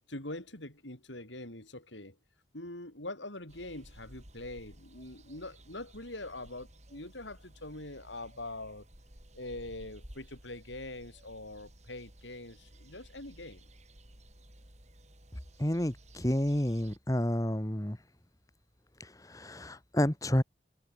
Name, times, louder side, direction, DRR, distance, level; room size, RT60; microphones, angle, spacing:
voice 1, 0.1-2.2 2.5-8.9 9.3-13.6, left 2 dB, 80° left, 7.8 m, -43 dB
sound 1, 3.5-17.0, right 1 dB, 35° right, 6.4 m, -55 dB
voice 2, 15.6-18.0 19.0-20.4, left 1 dB, 20° left, 1.5 m, -30 dB
head